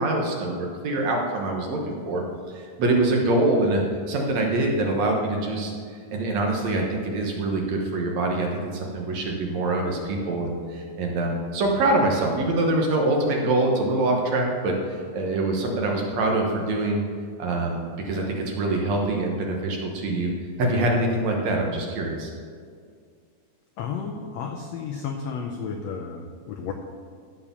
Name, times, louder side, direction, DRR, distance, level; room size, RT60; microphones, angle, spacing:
voice 1, 0.0-2.2 2.5-3.8 4.1-17.0 17.4-20.3 20.6-22.3, right 2 dB, 65° right, 0 dB, 2.2 m, -24 dB
voice 2, 23.8-26.7, left 6 dB, 80° left, 4 dB, 1.5 m, -32 dB
14.5 x 4.9 x 6.9 m, 2.1 s
omnidirectional pair, 3.9 m